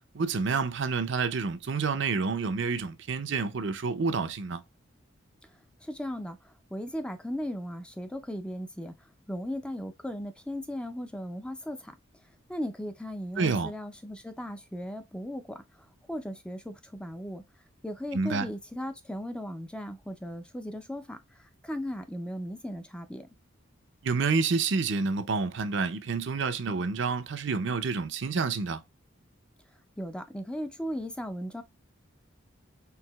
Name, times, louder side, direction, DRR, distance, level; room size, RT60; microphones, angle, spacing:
voice 1, 0.1-4.6 13.4-13.7 18.1-18.5 24.0-28.8, right 4 dB, 60° right, 0.6 m, -28 dB
voice 2, 5.8-6.4 6.7-8.9 9.3-11.9 12.5-15.6 16.1-17.4 17.8-23.3 30.0-31.6, equal, 5° left, 0.4 m, -37 dB
4.7 x 3.5 x 2.3 m
head